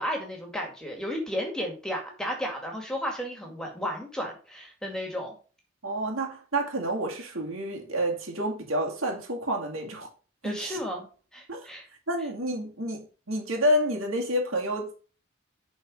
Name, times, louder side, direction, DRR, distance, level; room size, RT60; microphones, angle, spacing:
voice 1, 0.0-5.4 10.4-11.1 11.3-11.9, equal, 5° left, 2.0 m, -33 dB
voice 2, 5.8-10.1 10.4-10.8 11.5-11.7 12.1-15.0, equal, 85° right, 2.3 m, -29 dB
10.5 x 4.1 x 5.3 m
head